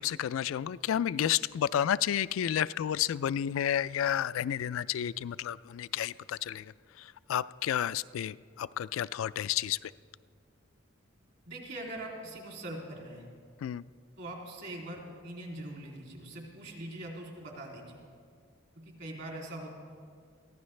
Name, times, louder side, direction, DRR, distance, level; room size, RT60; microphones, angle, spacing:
voice 1, 0.0-9.9 13.6-13.8, left 10 dB, 75° left, 18 dB, 0.3 m, -31 dB
voice 2, 11.5-13.2 14.2-18.0 18.8-19.8, right 1 dB, 55° right, -1 dB, 2.8 m, -42 dB
22.5 x 15.5 x 3.2 m, 2.1 s
head